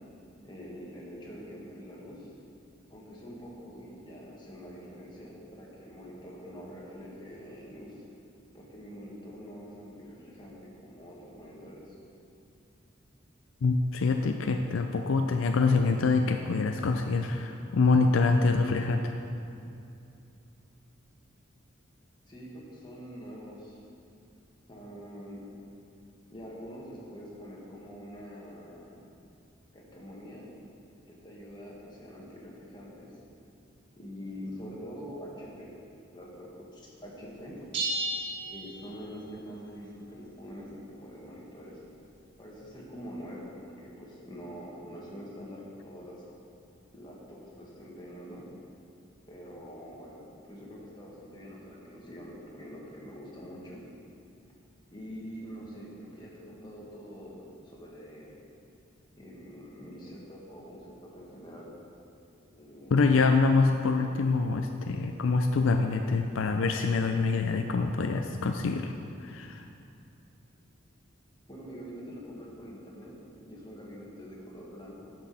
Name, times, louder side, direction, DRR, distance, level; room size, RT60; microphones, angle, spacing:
voice 1, 0.4-2.3 2.9-8.0 8.5-11.9 22.3-23.8 24.7-25.5 26.3-29.0 29.7-30.5 31.1-33.1 33.9-35.7 36.1-37.6 38.4-41.8 42.4-46.2 46.9-48.5 49.3-50.2 50.5-53.8 54.9-58.3 59.2-61.7 62.5-63.1 71.5-75.1, equal, 20° left, -5 dB, 1.8 m, -45 dB
voice 2, 13.6-19.2 62.9-68.9 69.2-69.6, left 4 dB, 75° left, 5 dB, 0.4 m, -25 dB
sound 1, 37.7-39.3, right 2 dB, 65° right, 1.5 m, -33 dB
11.5 x 6.1 x 4.3 m, 2.6 s
head